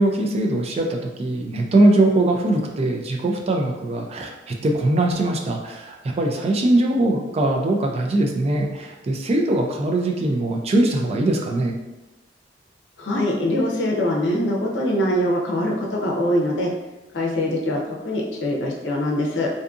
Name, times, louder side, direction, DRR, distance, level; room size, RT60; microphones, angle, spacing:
voice 1, 0.0-11.8, right 2 dB, 35° right, 2 dB, 0.3 m, -21 dB
voice 2, 13.0-16.7 17.1-19.5, left 1 dB, 75° left, -2 dB, 0.6 m, -23 dB
2.6 x 2.5 x 2.4 m, 1.0 s
head